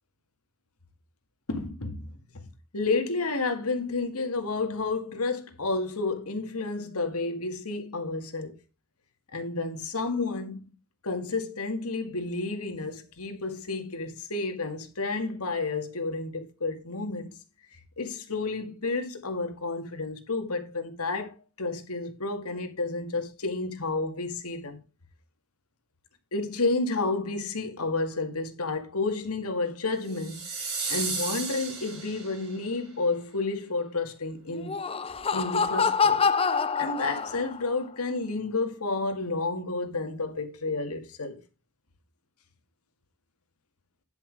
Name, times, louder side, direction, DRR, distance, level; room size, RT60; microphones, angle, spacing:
voice 1, 1.5-2.4 2.7-8.5 9.3-10.7 11.0-17.3 17.7-24.8 26.3-34.8 35.3-36.3 36.8-41.4, left 3 dB, 85° left, 2.0 m, -31 dB
sound 1, 30.1-32.6, right 4 dB, 80° right, 5.4 m, -34 dB
Laughter, 34.5-37.7, left 5 dB, 25° left, 0.5 m, -26 dB
11.0 x 5.9 x 4.7 m
head